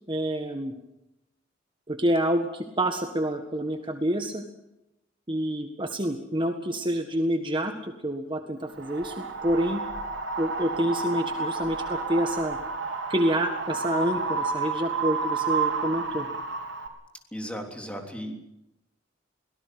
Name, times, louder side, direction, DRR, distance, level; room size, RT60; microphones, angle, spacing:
voice 1, 0.1-0.7 1.9-4.4 5.3-9.8 10.4-12.6 13.1-16.3, right 1 dB, 25° right, 5 dB, 1.7 m, -27 dB
Wind, 8.8-16.9, right 4 dB, 80° right, 3.7 m, -30 dB
voice 2, 17.3-18.4, equal, 5° left, 3 dB, 3.4 m, -35 dB
23.5 x 18.5 x 7.8 m, 0.88 s
head